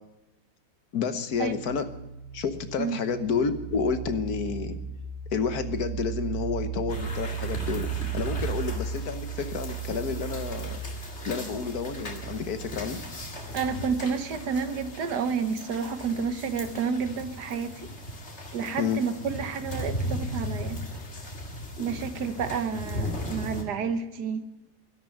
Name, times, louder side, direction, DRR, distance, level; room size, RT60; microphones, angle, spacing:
voice 1, 0.9-1.8 2.3-4.8 5.3-10.8 11.2-13.0 18.8-19.0, left 6 dB, 65° left, 10 dB, 1.6 m, -30 dB
sound 1, 1.3-16.7, right 9 dB, 35° right, 3.2 m, -37 dB
sound 2, 6.9-23.6, left 1 dB, 40° left, 2.4 m, -37 dB
voice 2, 13.5-17.9 18.5-20.8 21.8-24.4, right 6 dB, 80° right, 10 dB, 1.7 m, -30 dB
12.5 x 12.0 x 9.1 m, 0.96 s
omnidirectional pair, 1.7 m